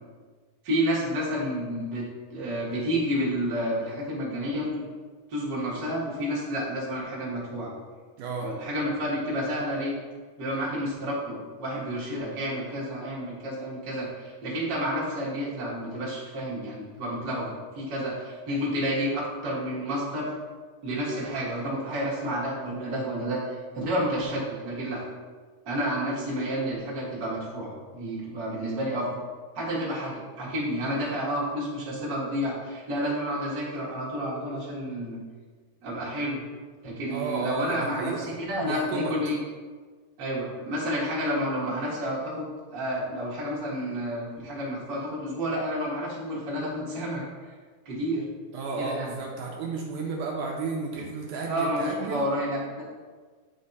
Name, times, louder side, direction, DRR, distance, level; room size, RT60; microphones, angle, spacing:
voice 1, 0.6-2.0 2.3-4.7 5.3-7.7 8.4-9.9 10.4-20.3 20.8-25.0 25.6-29.1 29.5-35.2 35.8-36.4 36.8-39.4 40.2-47.2 47.8-48.3 48.7-49.1 50.9-51.0 51.4-52.9, equal, 35° right, -6 dB, 1.7 m, -30 dB
voice 2, 8.2-8.5 37.1-38.3 38.6-39.1 48.5-52.3, right 4 dB, 80° right, -1 dB, 2.1 m, -32 dB
8.8 x 3.3 x 4.0 m, 1.5 s
omnidirectional pair, 3.7 m